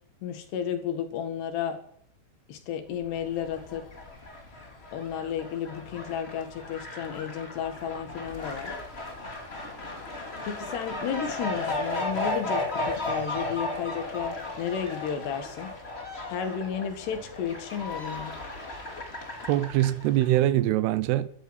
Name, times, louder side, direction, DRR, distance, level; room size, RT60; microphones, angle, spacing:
voice 1, 0.2-1.8 2.5-3.9 4.9-8.8 10.5-15.8 16.3-18.4, left 8 dB, 90° left, 4.0 m, -33 dB
Fowl, 3.0-20.4, left 2 dB, 20° left, 2.1 m, -35 dB
voice 2, 19.5-21.3, right 14 dB, 80° right, 2.8 m, -23 dB
13.0 x 12.5 x 8.3 m
omnidirectional pair, 4.6 m